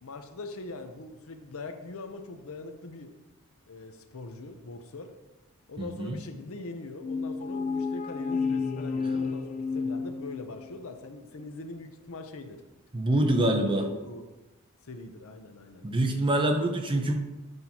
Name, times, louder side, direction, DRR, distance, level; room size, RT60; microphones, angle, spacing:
voice 1, 0.0-3.1 3.7-5.1 5.7-12.6 13.1-14.3 14.8-15.9, left 2 dB, 65° left, 6 dB, 0.7 m, -42 dB
voice 2, 5.8-6.2 12.9-13.8 15.8-17.2, right 1 dB, 20° right, 4 dB, 0.6 m, -25 dB
sound 1, 7.0-10.8, left 4 dB, 30° left, 0.3 m, -31 dB
8.0 x 5.4 x 2.9 m, 1.1 s
head